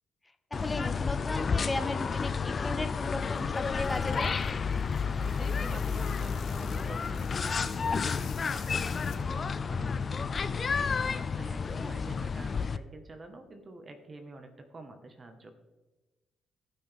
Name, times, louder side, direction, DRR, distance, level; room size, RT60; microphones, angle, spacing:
sound 1, 0.5-12.8, left 5 dB, 40° left, 0.4 m, -31 dB
voice 1, 0.5-4.3 10.5-10.8 11.8-11.9, left 2 dB, 15° left, 7 dB, 1.1 m, -36 dB
sound 2, 3.2-9.6, left 8 dB, 70° left, 1.1 m, -52 dB
voice 2, 5.2-10.6 11.1-15.5, right 2 dB, 35° right, 6 dB, 1.4 m, -47 dB
16.5 x 6.0 x 3.5 m, 1.1 s
cardioid pair, 90°, 0 cm